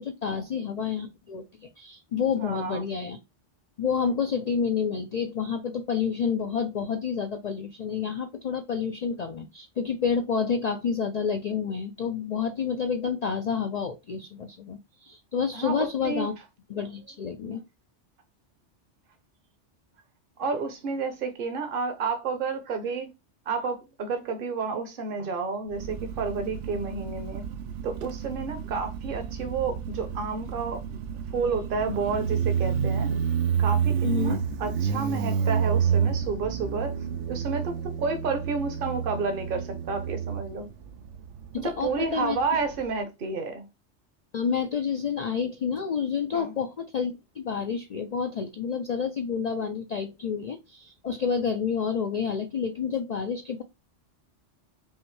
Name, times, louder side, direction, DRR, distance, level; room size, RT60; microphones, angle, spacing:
voice 1, 0.0-3.2 3.8-16.3 16.7-17.6 34.0-34.4 41.5-42.4 44.3-53.6, left 6 dB, 60° left, 0.4 m, -29 dB
voice 2, 2.4-2.8 15.5-16.3 20.4-23.1 23.5-27.4 27.8-31.0 31.3-33.1 33.6-34.0 34.2-37.0 37.3-40.7 41.6-43.7 46.3-46.5, right 4 dB, 50° right, 1.0 m, -30 dB
Motorcycle, 25.7-42.9, right 7 dB, 90° right, 0.9 m, -30 dB
5.5 x 2.6 x 3.1 m
omnidirectional pair, 1.2 m